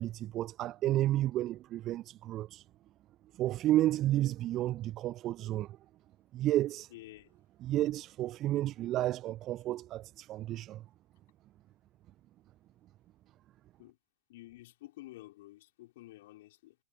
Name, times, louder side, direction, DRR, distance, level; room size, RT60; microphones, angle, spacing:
voice 1, 0.0-2.6 3.4-5.8 6.3-6.9 7.6-10.8, right 14 dB, 35° right, 1.5 m, -31 dB
voice 2, 6.9-7.3 13.8-14.0 14.3-16.8, left 17 dB, 55° left, 6.0 m, -51 dB
figure-of-eight pair, 90°, 0 cm